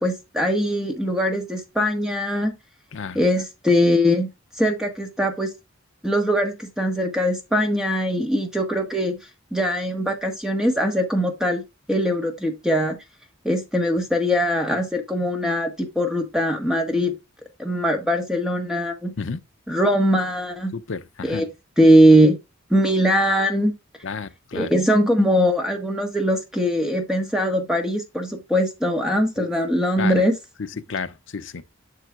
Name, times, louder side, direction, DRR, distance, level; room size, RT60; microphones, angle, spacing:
voice 1, 0.0-2.5 3.1-4.3 4.6-5.5 6.0-9.2 9.5-11.6 11.9-13.0 13.4-17.1 17.6-19.1 19.7-20.7 21.2-21.5 21.8-22.4 22.7-23.7 24.5-30.3, equal, 5° right, 1.4 m, -21 dB
voice 2, 20.7-21.4 24.0-24.7 29.4-29.5 30.0-30.1 30.9-31.6, left 5 dB, 60° left, 0.6 m, -31 dB
7.5 x 6.7 x 2.4 m
head